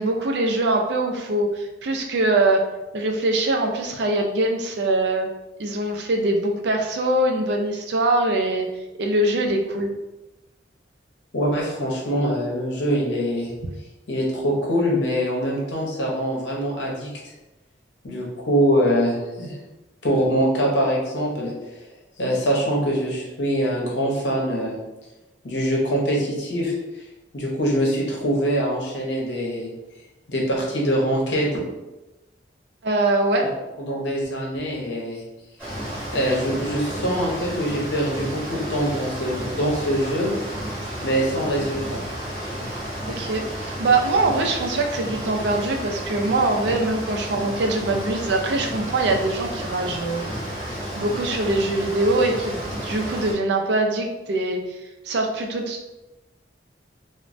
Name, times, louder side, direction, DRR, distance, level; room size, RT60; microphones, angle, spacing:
voice 1, 0.0-2.6 2.9-5.3 5.6-8.7 9.0-9.9 32.8-33.5 43.1-50.2 50.7-54.6 55.0-55.8, right 2 dB, 65° right, 3 dB, 0.4 m, -23 dB
voice 2, 11.3-13.5 14.1-17.1 18.0-19.6 20.0-21.5 22.2-24.8 25.4-26.7 27.3-29.7 30.3-31.6 33.4-33.5 33.8-35.2 36.1-40.3 41.0-42.0, equal, 80° left, -2 dB, 0.8 m, -23 dB
sound 1, 35.6-53.3, equal, 5° left, 1.2 m, -32 dB
3.1 x 2.1 x 2.5 m, 1.0 s
head